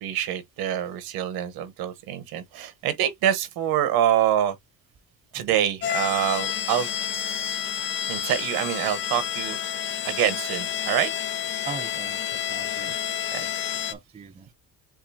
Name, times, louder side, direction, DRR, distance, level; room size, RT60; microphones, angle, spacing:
voice 1, 0.0-4.5 5.3-6.9 7.3-7.6 8.1-9.6 10.0-11.1 13.3-13.4, right 10 dB, 70° right, 1.1 m, -26 dB
sound 1, 5.8-13.9, left 10 dB, 30° left, 0.4 m, -29 dB
voice 2, 11.6-12.9 13.4-13.5 13.9-14.5, right 5 dB, 15° right, 0.6 m, -40 dB
7.4 x 2.6 x 2.7 m
cardioid pair, 135°, 38 cm